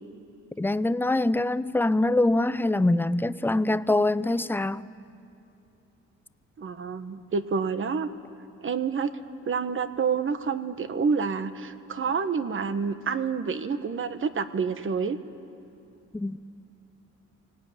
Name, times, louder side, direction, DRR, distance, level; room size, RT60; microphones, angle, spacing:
voice 1, 0.6-4.8 16.1-16.4, left 2 dB, 5° left, 0.5 m, -24 dB
voice 2, 6.6-8.1 8.6-9.1 9.5-15.2, right 5 dB, 40° right, 1.3 m, -28 dB
24.5 x 18.5 x 9.4 m
cardioid pair, 90°, 30 cm